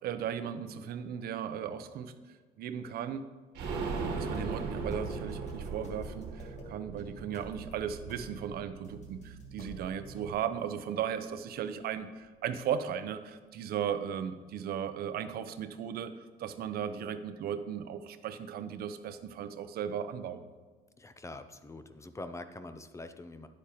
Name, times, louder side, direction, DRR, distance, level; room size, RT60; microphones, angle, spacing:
voice 1, 0.0-2.1 2.6-3.2 4.1-16.1 16.4-20.4, right 8 dB, 65° right, 10 dB, 0.6 m, -36 dB
sound 1, 3.5-9.2 9.5-9.6 9.9-10.0, right 4 dB, 90° right, 1.4 m, -38 dB
sound 2, 4.3-10.3, right 2 dB, 45° left, 1.4 m, -48 dB
voice 2, 21.0-23.5, left 2 dB, 15° left, 10 dB, 0.5 m, -44 dB
9.9 x 8.3 x 3.0 m, 1.4 s
cardioid pair, 110°, 17 cm